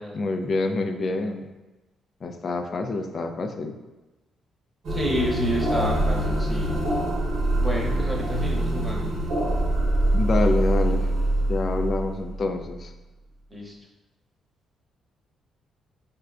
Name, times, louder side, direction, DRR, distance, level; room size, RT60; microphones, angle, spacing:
voice 1, 0.1-1.5 2.2-3.8 10.1-11.1 11.5-12.9, left 3 dB, 45° left, 6 dB, 0.3 m, -27 dB
sound 1, 4.8-12.8, right 1 dB, 65° right, 0.8 m, -24 dB
voice 2, 4.9-6.8 7.6-9.2 13.5-13.7, equal, 10° right, -3 dB, 0.8 m, -30 dB
4.9 x 2.2 x 2.4 m, 1.1 s
cardioid pair, 90°, 0 cm